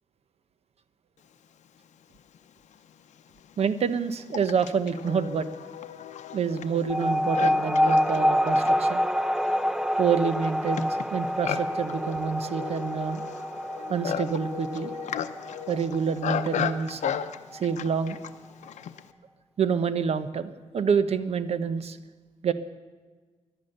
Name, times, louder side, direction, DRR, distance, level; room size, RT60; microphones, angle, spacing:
Livestock farm animals working animals, 2.3-2.4 3.2-19.1, left 9 dB, 80° left, 0.7 m, -35 dB
voice 1, 3.6-5.5 6.3-9.0 10.0-13.2 13.9-14.9 15.7-17.1 17.5-18.2 19.6-22.0 22.4-22.5, right 6 dB, 60° right, 12 dB, 0.9 m, -27 dB
sound 1, 6.9-17.8, equal, 5° right, 0.4 m, -27 dB
17.5 x 11.5 x 6.7 m, 1.4 s
cardioid pair, 110°, 12 cm